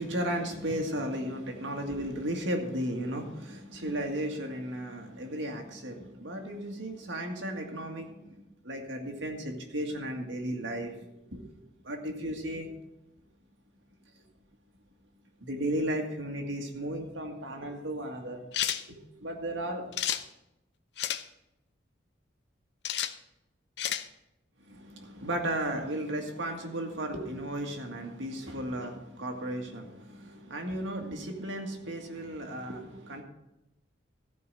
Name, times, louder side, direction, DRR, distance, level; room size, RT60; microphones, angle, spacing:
voice 1, 0.0-11.5 11.8-12.7 15.4-18.4 18.9-20.0 24.6-33.2, right 1 dB, 90° right, 3 dB, 1.9 m, -35 dB
sound 1, 18.5-18.8 19.9-20.2 21.0-21.2 22.8-23.1 23.8-24.1, left 10 dB, 65° left, 0.6 m, -30 dB
13.5 x 4.8 x 8.0 m, 0.91 s
head